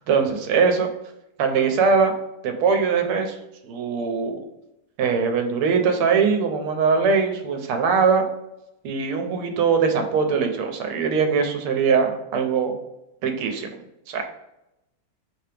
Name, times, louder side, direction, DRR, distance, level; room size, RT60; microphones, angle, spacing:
voice 1, 0.1-0.9 1.4-2.1 2.4-3.4 3.6-4.4 5.0-8.2 8.8-12.7 13.2-13.7 14.1-14.2, right 5 dB, 85° right, 5 dB, 1.6 m, -21 dB
5.3 x 2.8 x 3.3 m, 0.89 s
omnidirectional pair, 2.4 m